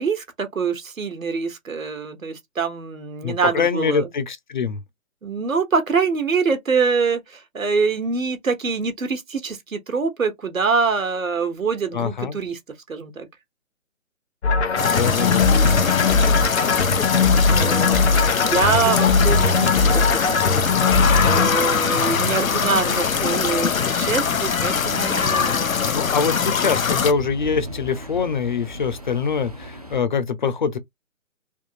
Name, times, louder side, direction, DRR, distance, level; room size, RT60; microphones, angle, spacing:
voice 1, 0.0-4.1 5.2-12.6 12.9-13.3 17.1-20.5 21.2-25.7, right 5 dB, 80° right, 1.1 m, -25 dB
voice 2, 3.2-4.8 11.9-12.4 14.8-15.5 25.9-30.8, left 5 dB, 35° left, 0.6 m, -24 dB
sound 1, 14.4-21.5, left 4 dB, 55° left, 0.9 m, -19 dB
sound 2, 14.6-30.0, right 1 dB, 30° right, 0.4 m, -37 dB
sound 3, 14.7-27.1, left 6 dB, 85° left, 0.7 m, -22 dB
3.5 x 2.7 x 2.7 m
figure-of-eight pair, 145°, 40 cm